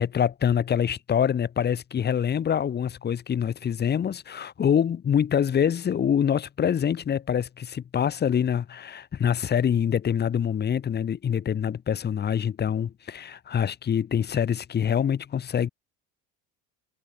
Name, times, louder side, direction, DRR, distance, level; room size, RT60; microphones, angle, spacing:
voice 1, 0.0-15.7, left 8 dB, 35° left, 3.8 m, -25 dB
cardioid pair, 125°, 30 cm